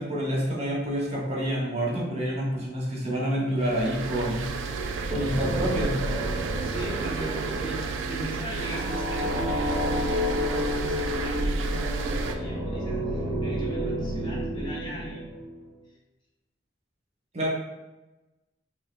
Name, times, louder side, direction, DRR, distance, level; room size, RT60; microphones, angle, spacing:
voice 1, 0.0-4.4 5.1-6.0 17.3-17.5, equal, 35° right, -4 dB, 0.7 m, -28 dB
sound 1, 3.6-12.4, right 4 dB, 90° right, 0.3 m, -32 dB
sound 2, 4.5-15.6, equal, 75° left, 1.1 m, -31 dB
voice 2, 6.5-15.2, equal, 25° left, -4 dB, 0.7 m, -39 dB
3.3 x 2.9 x 2.2 m, 1.0 s
head